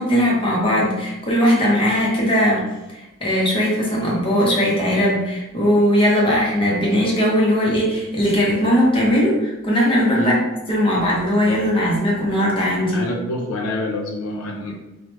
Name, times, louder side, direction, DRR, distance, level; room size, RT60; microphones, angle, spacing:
voice 1, 0.0-2.6 2.9-10.4 10.7-13.0, equal, 25° left, -4 dB, 0.7 m, -19 dB
voice 2, 12.9-14.7, left 1 dB, 80° left, -1 dB, 0.5 m, -27 dB
2.9 x 2.0 x 3.0 m, 0.98 s
head